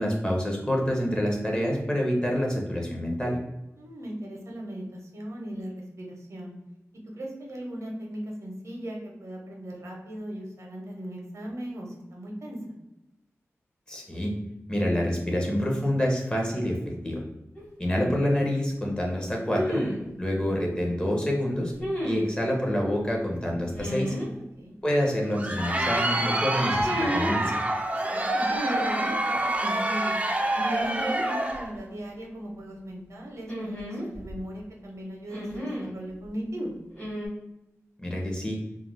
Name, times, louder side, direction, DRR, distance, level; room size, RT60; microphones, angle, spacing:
voice 1, 0.0-3.4 13.9-14.3 14.7-17.2 17.8-19.8 20.2-21.7 22.0-24.1 24.8-27.6 38.0-38.6, equal, 15° left, -1 dB, 0.6 m, -27 dB
voice 2, 3.8-4.8 5.1-5.7 6.0-6.5 7.2-12.6 24.2-24.7 28.1-30.1 30.5-36.7, right 1 dB, 70° right, 0 dB, 0.7 m, -38 dB
sound 1, 17.6-17.7 19.5-20.1 21.8-22.3 23.7-24.3 26.8-27.4 28.5-29.1 30.6-31.2 31.5-31.6 33.5-34.4 35.3-35.9 37.0-37.3, equal, 35° left, 1.1 m, -32 dB
Crowd, 25.2-31.7, right 1 dB, 25° right, 0.3 m, -27 dB
2.3 x 2.1 x 3.2 m, 0.93 s
wide cardioid pair, 115°, 5 cm